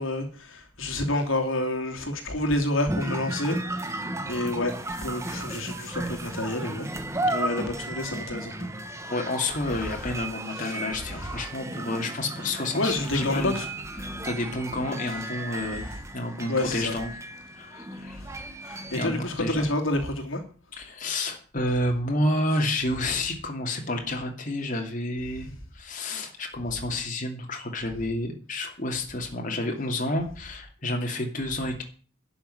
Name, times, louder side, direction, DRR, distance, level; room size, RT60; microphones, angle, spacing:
voice 1, 0.0-3.6 4.3-4.7 5.0-6.9 7.3-8.5 12.8-13.7 16.5-16.9 18.7-20.4, left 1 dB, 75° left, 3 dB, 2.9 m, -28 dB
sound 1, 2.9-19.1, right 2 dB, 15° right, 1.3 m, -35 dB
voice 2, 9.1-13.6 14.0-15.9 16.1-17.2 17.6-18.2 18.9-19.7 20.7-31.8, left 1 dB, 40° left, 1 dB, 2.7 m, -30 dB
12.0 x 7.0 x 9.8 m, 0.41 s
head